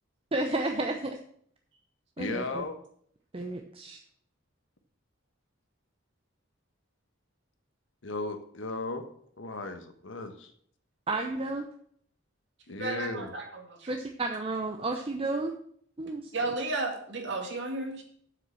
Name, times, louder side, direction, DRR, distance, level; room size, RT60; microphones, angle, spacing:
voice 1, 0.3-1.2 2.2-2.6 3.3-4.0 11.1-11.7 13.9-15.5 16.0-16.3, right 2 dB, 30° right, 4 dB, 0.7 m, -32 dB
voice 2, 2.2-2.8 8.0-9.0 9.4-10.5 12.7-13.3, left 2 dB, 75° left, 8 dB, 1.2 m, -35 dB
voice 3, 12.8-13.9 16.3-18.0, right 2 dB, 65° right, 2 dB, 2.3 m, -33 dB
7.5 x 6.6 x 7.5 m, 0.63 s
head